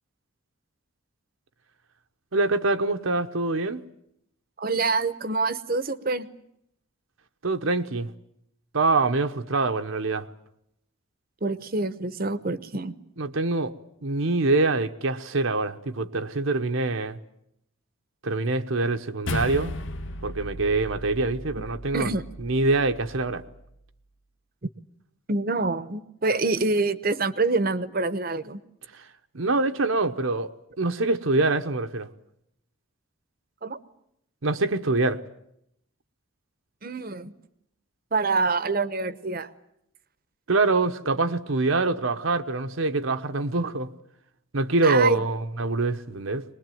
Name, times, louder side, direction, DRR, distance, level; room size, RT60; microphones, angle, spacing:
voice 1, 2.3-3.8 7.4-8.1 8.7-10.3 13.2-13.7 14.0-17.2 18.2-19.7 20.2-22.1 22.4-23.4 29.3-32.1 34.4-35.2 40.5-43.9 44.5-46.4, right 3 dB, 70° right, 1.0 m, -25 dB
voice 2, 4.6-6.3 11.4-12.9 21.9-22.2 24.6-24.7 25.3-28.6 33.6-33.8 36.8-37.3 38.1-39.5 44.8-45.2, right 3 dB, 45° right, 0.9 m, -26 dB
sound 1, 19.3-23.8, left 1 dB, 60° left, 1.0 m, -36 dB
23.0 x 20.5 x 9.2 m
head